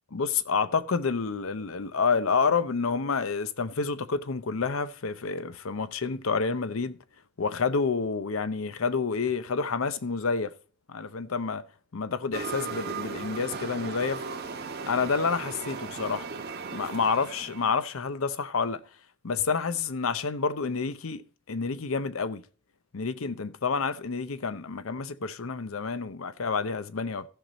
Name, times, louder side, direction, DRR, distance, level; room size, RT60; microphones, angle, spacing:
voice 1, 0.1-7.0 7.4-10.5 10.9-11.6 11.9-14.2 14.9-16.3 16.7-18.8 19.2-22.4 22.9-27.3, left 5 dB, 70° left, 0.7 m, -29 dB
sound 1, 12.3-17.8, right 4 dB, 55° right, 1.4 m, -37 dB
15.0 x 5.9 x 4.0 m
head